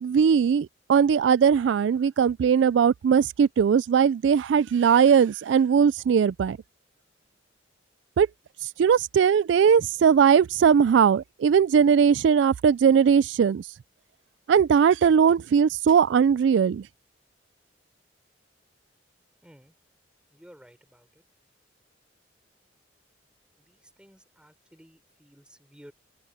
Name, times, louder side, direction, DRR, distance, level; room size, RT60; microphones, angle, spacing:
voice 1, 0.0-6.6 8.2-8.3 8.8-13.6 14.5-16.8, right 7 dB, 70° right, 0.3 m, -20 dB
voice 2, 19.4-19.7 20.3-21.2 23.6-25.9, equal, 5° right, 4.2 m, -54 dB
open air
head